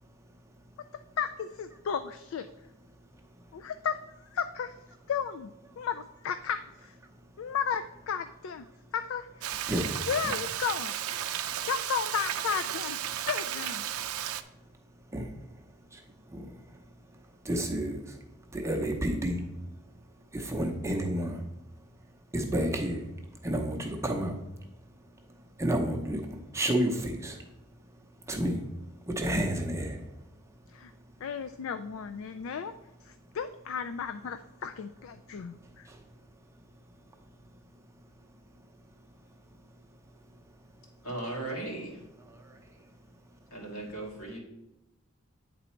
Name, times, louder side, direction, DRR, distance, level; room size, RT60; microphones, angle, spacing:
voice 1, 1.2-2.5 3.5-4.7 5.1-5.5 5.8-7.0 7.4-8.6 8.9-9.5 10.1-10.9 11.7-13.0 13.3-13.8 30.7-30.9 31.2-32.7 33.0-35.9, left 7 dB, 60° left, 9 dB, 0.3 m, -34 dB
voice 2, 6.8-7.1 8.1-8.3 8.6-8.7 9.4-10.3 10.7-11.5 12.4-13.2 15.1-16.9 17.1-18.2 18.5-19.5 20.3-21.5 22.3-23.1 23.4-24.4 25.2-27.5 28.2-30.2 32.0-32.1 35.3-36.1 38.2-38.7 40.3-40.4 41.6-41.7 42.1-42.6, right 1 dB, 15° right, 2 dB, 0.7 m, -33 dB
Frying (food), 9.4-14.4, right 10 dB, 70° right, 0.4 m, -34 dB
voice 3, 41.0-42.0 43.5-44.4, right 2 dB, 80° left, -2 dB, 2.3 m, -37 dB
9.1 x 4.0 x 4.3 m, 0.95 s
head